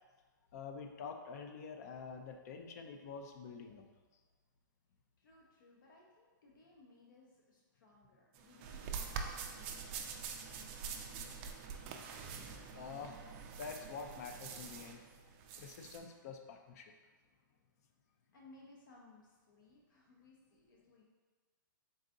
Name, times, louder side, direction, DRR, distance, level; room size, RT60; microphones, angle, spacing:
voice 1, 0.5-3.9 12.7-13.2 13.6-15.1 15.6-16.9, left 5 dB, 50° left, 5 dB, 0.5 m, -47 dB
voice 2, 5.2-9.1 9.5-10.2 10.8-11.9 18.3-21.0, left 2 dB, 70° left, -3 dB, 0.8 m, -62 dB
sound 1, 8.3-16.0, right 6 dB, 35° right, 0.4 m, -45 dB
3.9 x 3.7 x 2.6 m, 1.4 s
hypercardioid pair, 145°, 11 cm